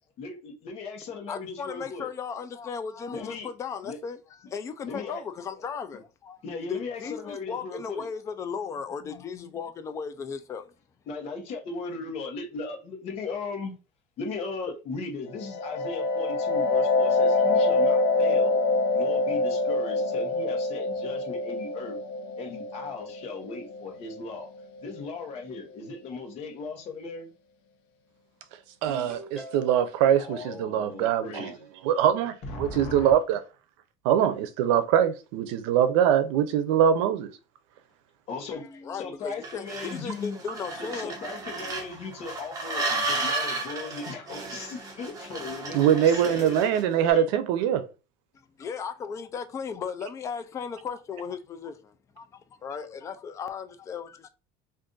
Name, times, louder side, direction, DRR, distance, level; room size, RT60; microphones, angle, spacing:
voice 1, 0.2-2.1 3.1-3.5 3.8-4.0 4.8-5.2 6.4-8.1 11.1-13.8 14.2-18.5 18.9-22.0 22.4-24.5 24.8-27.3 30.2-32.0 32.4-33.1 38.3-38.7 38.9-40.4 40.8-46.6 47.0-47.3, left 4 dB, 45° left, 1.0 m, -37 dB
voice 2, 1.3-6.4 6.7-10.7 38.5-41.2 48.6-54.3, left 6 dB, 20° left, 0.3 m, -36 dB
sound 1, 15.3-24.8, left 3 dB, 75° left, 0.7 m, -26 dB
voice 3, 28.8-31.5 31.8-33.4 34.0-37.3 45.7-47.8, right 9 dB, 85° right, 0.5 m, -23 dB
Ringtone, 28.9-30.0, equal, 5° left, 1.0 m, -43 dB
sound 2, 39.4-46.9, right 2 dB, 25° right, 0.9 m, -33 dB
2.5 x 2.5 x 3.7 m
cardioid pair, 160°, 15 cm